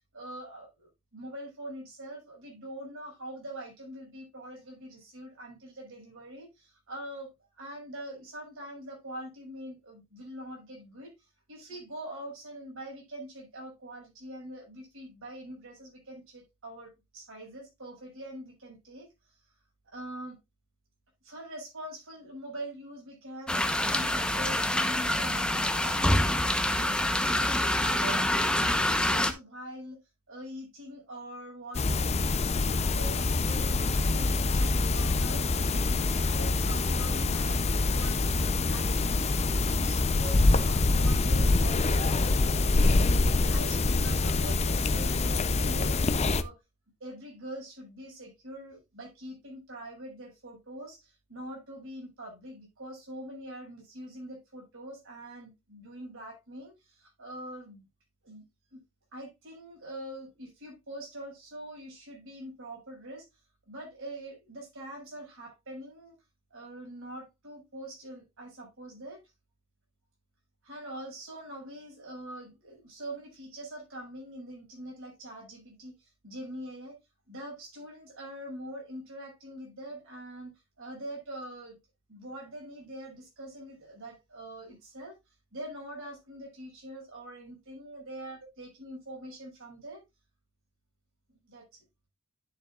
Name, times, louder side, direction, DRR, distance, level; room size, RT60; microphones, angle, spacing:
voice 1, 0.1-19.1 19.9-20.4 21.2-26.4 26.7-30.0 30.3-35.4 35.9-39.3 39.7-46.5 47.0-57.9 58.2-58.4 58.7-58.8 59.1-63.3 63.7-66.2 66.5-69.2 70.6-77.0 77.3-81.8 82.1-85.2 85.5-90.0 91.3-91.8, right 1 dB, 65° right, 6.3 m, -44 dB
sound 1, 23.5-29.3, left 1 dB, 5° left, 0.9 m, -26 dB
sound 2, 31.7-46.4, left 3 dB, 30° left, 0.6 m, -25 dB
11.0 x 7.2 x 2.4 m
head